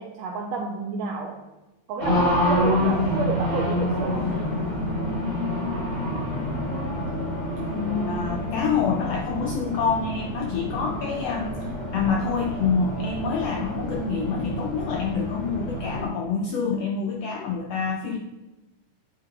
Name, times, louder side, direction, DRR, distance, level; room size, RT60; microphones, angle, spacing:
voice 1, 0.0-1.4 1.9-4.6, right 4 dB, 85° right, 1 dB, 1.5 m, -30 dB
Race car auto racing, 2.0-16.1, left 1 dB, 20° left, 2.4 m, -27 dB
voice 2, 8.1-18.2, left 5 dB, 85° left, 0 dB, 1.4 m, -27 dB
9.1 x 3.8 x 4.6 m, 1.1 s
omnidirectional pair, 3.7 m